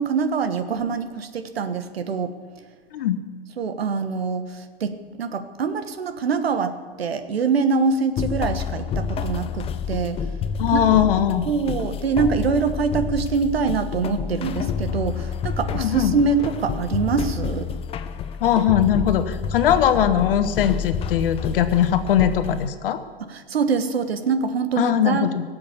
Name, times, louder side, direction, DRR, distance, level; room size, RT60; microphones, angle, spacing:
voice 1, 0.0-2.3 3.6-10.2 10.7-10.8 11.5-17.7 23.2-25.3, right 5 dB, 80° right, 10 dB, 1.3 m, -24 dB
sound 1, 8.2-22.7, left 6 dB, 20° left, 0.6 m, -29 dB
voice 2, 10.6-11.5 15.7-16.2 18.4-23.0 24.8-25.4, left 9 dB, 65° left, 10 dB, 1.3 m, -20 dB
17.0 x 7.6 x 8.3 m, 1.5 s
hypercardioid pair, 115°, 30 cm